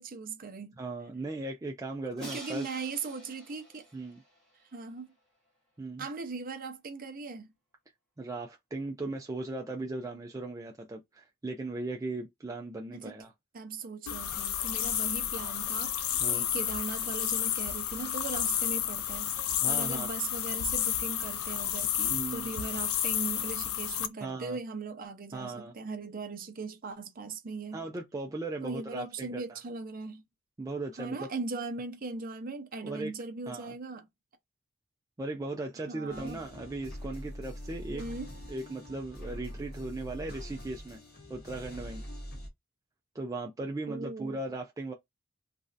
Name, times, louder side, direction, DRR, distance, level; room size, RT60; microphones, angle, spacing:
voice 1, 0.0-0.8 2.2-3.9 4.7-5.1 6.0-7.5 12.9-13.2 13.5-19.3 19.7-27.9 28.6-30.2 31.0-34.1 35.8-36.4 37.9-38.3 43.9-44.4, right 4 dB, 45° right, 0.7 m, -39 dB
voice 2, 0.8-2.6 3.9-4.2 5.8-6.1 8.2-13.3 16.2-16.4 19.6-20.1 22.1-22.5 24.2-24.6 25.3-25.7 27.7-29.6 30.6-31.3 32.8-33.1 33.5-33.7 35.2-38.0 38.5-41.0 41.3-42.1 43.1-44.9, right 2 dB, 15° right, 0.3 m, -37 dB
Crash cymbal, 2.2-5.1, right 1 dB, 5° left, 1.1 m, -48 dB
sound 1, 14.1-24.1, left 10 dB, 90° left, 0.4 m, -31 dB
sound 2, 36.1-42.5, equal, 50° left, 1.0 m, -43 dB
3.1 x 2.5 x 2.5 m
head